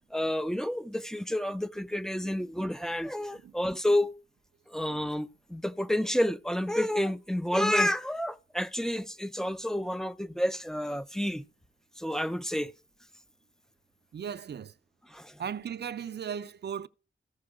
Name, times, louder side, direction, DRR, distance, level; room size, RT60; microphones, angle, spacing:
voice 1, 0.1-4.1 4.7-11.4 12.0-12.7 15.1-15.4, left 1 dB, ahead, 0.4 m, -30 dB
voice 2, 14.1-14.7 15.4-16.9, right 8 dB, 55° right, 0.5 m, -36 dB
14.5 x 5.1 x 4.9 m
cardioid pair, 75°, 21 cm